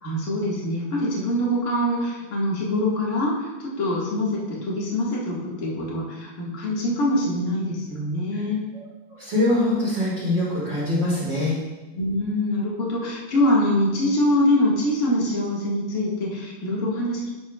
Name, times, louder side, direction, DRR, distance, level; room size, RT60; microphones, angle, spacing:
voice 1, 0.0-8.6 11.9-17.3, left 1 dB, 40° left, -5 dB, 1.0 m, -24 dB
voice 2, 9.1-11.5, left 1 dB, 35° right, -9 dB, 2.5 m, -23 dB
10.5 x 7.9 x 2.3 m, 1.1 s
omnidirectional pair, 4.1 m